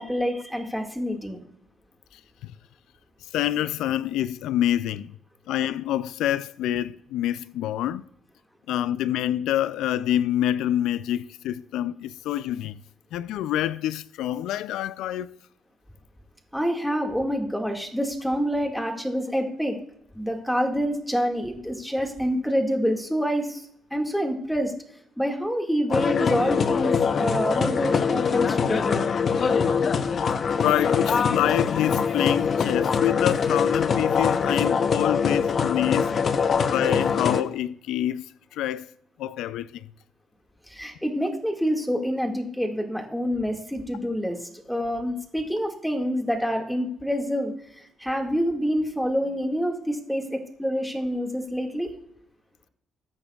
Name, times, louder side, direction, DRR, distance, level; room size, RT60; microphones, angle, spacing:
voice 1, 0.0-1.4 16.5-19.8 20.2-24.7 25.2-29.1 36.5-36.6 40.7-51.9, equal, ahead, 1.9 m, -27 dB
voice 2, 2.1-2.5 3.3-5.1 5.5-8.0 8.7-12.8 13.1-15.3 30.6-36.2 36.7-38.9 39.2-39.9, left 12 dB, 90° left, 0.3 m, -27 dB
sound 1, 25.9-37.4, left 6 dB, 50° left, 0.7 m, -23 dB
20.5 x 8.7 x 2.3 m
cardioid pair, 90°, 0 cm